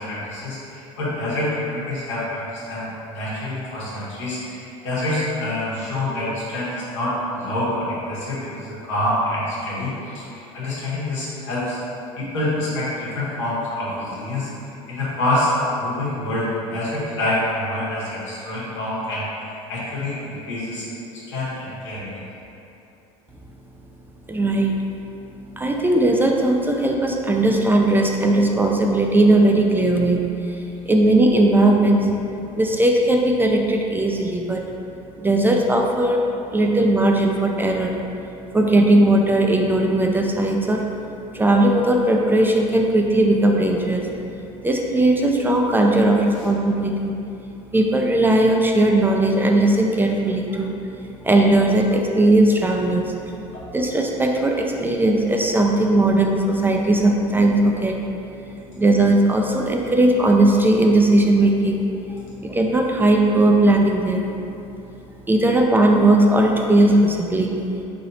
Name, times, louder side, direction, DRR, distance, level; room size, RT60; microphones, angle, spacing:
voice 1, 0.0-11.8 12.1-14.5 14.9-15.5 15.8-20.8 21.3-22.2 46.3-46.5 53.5-53.6, left 1 dB, 90° left, -8 dB, 1.3 m, -26 dB
voice 2, 24.3-24.7 25.6-30.2 30.9-32.1 32.6-34.6 35.2-36.2 36.5-37.9 38.5-40.8 41.3-44.0 44.6-47.1 47.7-50.7 51.2-53.1 53.7-58.0 58.7-61.8 62.4-64.3 65.3-67.6, right 1 dB, 15° right, 1 dB, 0.3 m, -18 dB
3.2 x 2.8 x 4.1 m, 2.8 s
supercardioid pair, 95°, 15 cm